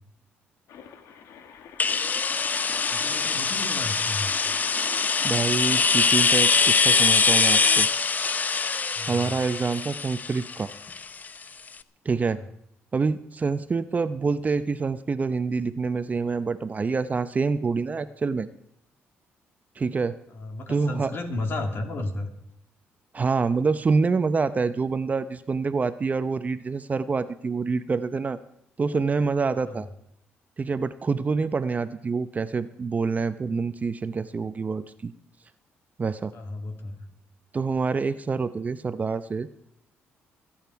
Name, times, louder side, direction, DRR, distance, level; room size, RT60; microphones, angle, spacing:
sound 1, 0.7-6.4, left 7 dB, 80° left, 1.3 m, -44 dB
sound 2, 1.8-11.4, left 5 dB, 35° left, 0.6 m, -23 dB
voice 1, 2.9-4.3 8.9-9.3 12.4-12.5 20.3-22.3 29.6-29.8 36.3-37.1, left 2 dB, 55° left, 4 dB, 2.6 m, -33 dB
voice 2, 5.2-7.9 9.1-10.7 12.0-12.4 12.9-18.5 19.8-20.2 20.7-21.1 23.1-28.4 28.8-29.9 30.6-35.1 36.0-36.3 37.5-39.5, right 4 dB, 35° right, 13 dB, 0.7 m, -26 dB
25.0 x 8.9 x 4.7 m, 0.75 s
cardioid pair, 85°, 5 cm